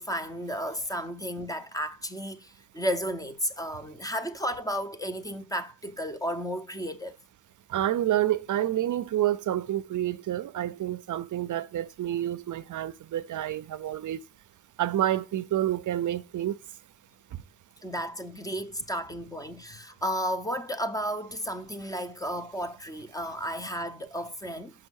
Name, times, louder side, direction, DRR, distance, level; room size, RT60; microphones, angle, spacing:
voice 1, 0.0-7.2 17.8-24.7, equal, 10° left, 0.7 m, -33 dB
voice 2, 7.7-14.2 14.8-16.6, right 12 dB, 60° right, 0.5 m, -28 dB
6.5 x 6.1 x 6.3 m
wide cardioid pair, 165°, 36 cm